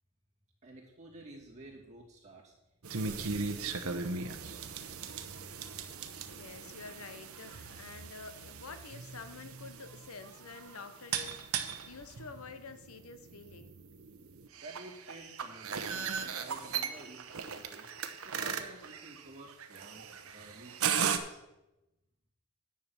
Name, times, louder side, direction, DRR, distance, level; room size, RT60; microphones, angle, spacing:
voice 1, 0.6-2.5 2.9-4.7 14.5-17.9 18.2-21.4, right 2 dB, 30° right, -4 dB, 2.4 m, -52 dB
sound 1, 2.8-21.2, right 6 dB, 90° right, 0.8 m, -38 dB
voice 2, 6.3-13.7, left 4 dB, 90° left, 10 dB, 0.8 m, -49 dB
9.9 x 5.8 x 7.3 m, 0.95 s
head